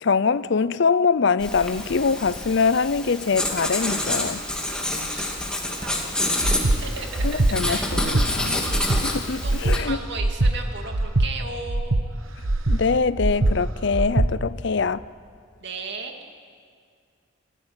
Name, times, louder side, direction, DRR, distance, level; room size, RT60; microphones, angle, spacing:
voice 1, 0.0-4.4 7.2-8.6 9.0-10.0 12.7-15.0, left 5 dB, 60° left, 0.6 m, -23 dB
Writing, 1.4-9.8, left 1 dB, 5° left, 2.5 m, -28 dB
voice 2, 5.6-6.5 6.8-7.4 7.7-7.9 9.4-12.0 15.6-16.1, right 4 dB, 55° right, 2.6 m, -36 dB
Breathing, 6.4-6.8 7.2-7.5 7.9-8.3 8.7-9.0 9.4-9.8 10.2-10.5 10.9-11.3 11.7-12.0 12.4-12.8 13.2-13.5 13.9-14.3, right 2 dB, 85° right, 1.1 m, -21 dB
27.5 x 16.5 x 9.0 m
head